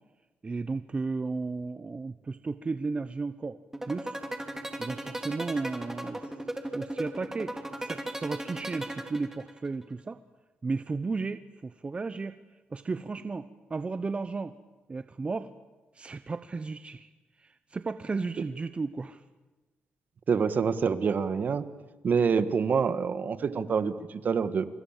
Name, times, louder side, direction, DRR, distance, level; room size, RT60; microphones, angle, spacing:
voice 1, 0.4-3.6 3.8-4.2 4.8-6.3 6.7-10.2 10.6-12.4 12.7-14.5 14.9-15.5 15.9-17.1 17.4-19.2 22.1-22.2, right 4 dB, 30° right, 11 dB, 1.0 m, -34 dB
sound 1, 3.7-9.7, right 1 dB, 10° right, 3.4 m, -36 dB
voice 2, 20.3-21.7 22.0-24.7, right 6 dB, 55° right, 12 dB, 1.7 m, -26 dB
30.0 x 24.5 x 7.5 m, 1.1 s
cardioid pair, 85°, 4 cm